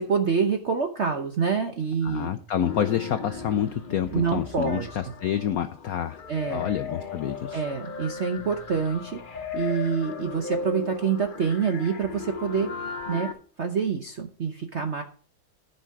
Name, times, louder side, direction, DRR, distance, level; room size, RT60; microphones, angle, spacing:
voice 1, 0.0-2.3 4.1-4.9 6.3-6.7 7.5-9.2 9.5-12.7 13.1-13.3 13.6-15.0, right 6 dB, 60° right, 5 dB, 0.7 m, -26 dB
voice 2, 2.0-6.2 6.5-7.6, left 9 dB, 90° left, 10 dB, 0.7 m, -28 dB
sound 1, 2.7-13.3, left 5 dB, 45° left, 0.6 m, -37 dB
14.0 x 5.6 x 4.7 m, 0.43 s
omnidirectional pair, 2.3 m